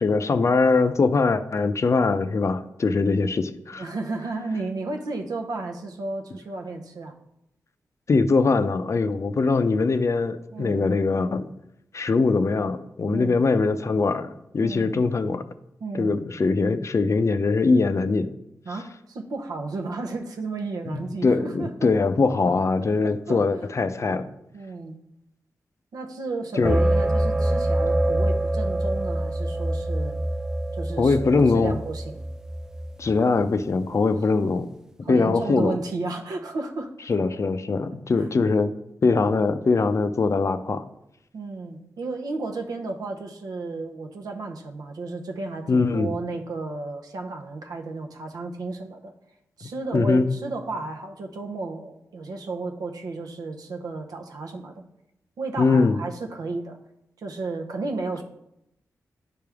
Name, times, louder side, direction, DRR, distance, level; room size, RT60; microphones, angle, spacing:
voice 1, 0.0-3.9 8.1-11.5 11.9-14.3 14.5-15.4 15.9-18.3 20.9-24.3 26.6-26.8 31.0-31.8 33.0-34.7 35.0-35.8 37.1-38.7 39.0-40.8 45.7-46.1 49.6-50.3 55.6-56.0, left 4 dB, 50° left, 11 dB, 0.5 m, -22 dB
voice 2, 3.8-7.1 10.5-10.9 13.1-13.4 14.6-15.0 15.8-16.2 18.7-21.9 22.8-23.4 24.5-25.0 25.9-30.2 30.7-32.2 34.2-34.3 35.0-36.9 38.1-38.3 41.3-49.1 49.6-54.9 55.4-56.8 57.2-58.2, right 3 dB, 80° right, 4 dB, 0.8 m, -33 dB
sound 1, 26.6-33.2, right 1 dB, 10° right, 0.4 m, -25 dB
9.9 x 3.4 x 3.5 m, 0.82 s
cardioid pair, 45°, 6 cm